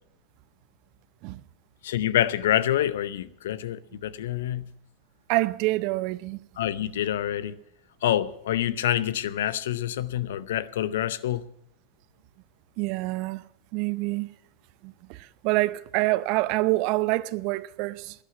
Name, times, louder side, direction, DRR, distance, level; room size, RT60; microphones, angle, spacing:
voice 1, 1.8-4.7 6.6-7.6 8.0-11.4, left 11 dB, 70° left, 0.7 m, -27 dB
voice 2, 5.3-6.4 12.8-13.4 13.7-14.3 14.8-15.2 15.4-18.1, right 20 dB, 55° right, 0.6 m, -26 dB
11.5 x 10.0 x 9.3 m
hypercardioid pair, 85°, 0 cm